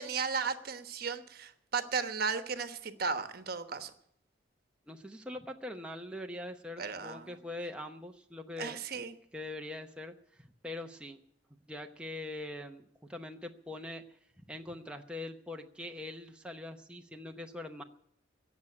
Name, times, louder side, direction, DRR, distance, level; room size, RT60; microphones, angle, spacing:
voice 1, 0.0-3.9 6.8-7.3 8.6-9.1, right 5 dB, 55° right, 9 dB, 1.1 m, -35 dB
voice 2, 4.9-9.0 9.3-11.2 11.7-14.0 14.5-17.8, left 2 dB, 5° right, 2 dB, 0.8 m, -43 dB
16.5 x 7.2 x 9.7 m, 0.72 s
head